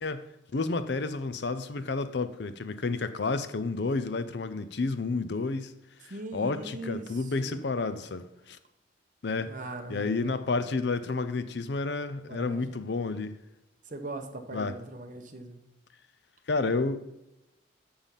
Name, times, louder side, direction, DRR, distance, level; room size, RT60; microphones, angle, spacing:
voice 1, 0.5-5.7 6.0-8.6 9.2-9.5 9.9-13.4 14.5-14.7 16.5-17.0, left 3 dB, 60° left, 0.6 m, -30 dB
voice 2, 6.1-8.1 9.4-10.4 10.7-10.8 12.3-12.8 13.8-15.6, right 2 dB, 40° right, 1.0 m, -41 dB
7.1 x 6.8 x 5.7 m
head